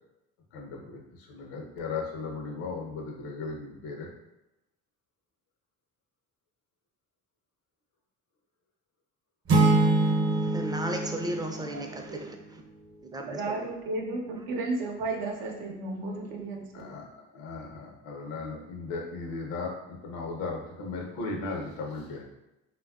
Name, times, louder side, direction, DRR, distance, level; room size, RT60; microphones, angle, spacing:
voice 1, 0.5-4.1 16.7-17.1 17.3-22.2, left 3 dB, 80° left, 0 dB, 0.7 m, -36 dB
sound 1, 9.5-12.3, right 2 dB, 40° right, 0.7 m, -25 dB
voice 2, 10.3-12.4 13.1-13.7, right 1 dB, 10° right, 3 dB, 0.4 m, -35 dB
voice 3, 13.3-16.9, right 2 dB, 80° right, 1 dB, 0.6 m, -33 dB
3.4 x 2.3 x 2.3 m, 0.95 s
supercardioid pair, 65°, 34 cm